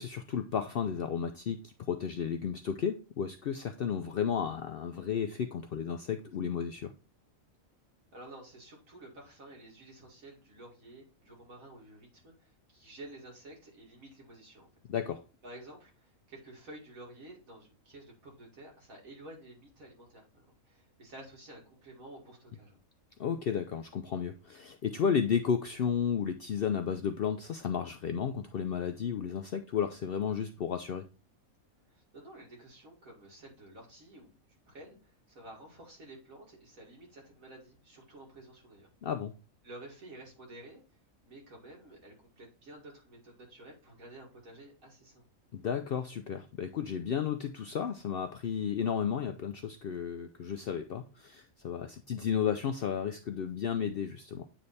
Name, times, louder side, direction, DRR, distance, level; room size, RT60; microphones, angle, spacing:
voice 1, 0.0-6.9 14.9-15.2 23.2-31.1 39.0-39.3 45.5-54.4, left 7 dB, 65° left, 0.5 m, -33 dB
voice 2, 8.1-14.7 15.4-22.8 31.9-34.4 34.7-38.9 39.6-40.8 41.2-45.2, right 1 dB, 75° right, 2.5 m, -51 dB
8.9 x 3.3 x 4.0 m
omnidirectional pair, 1.4 m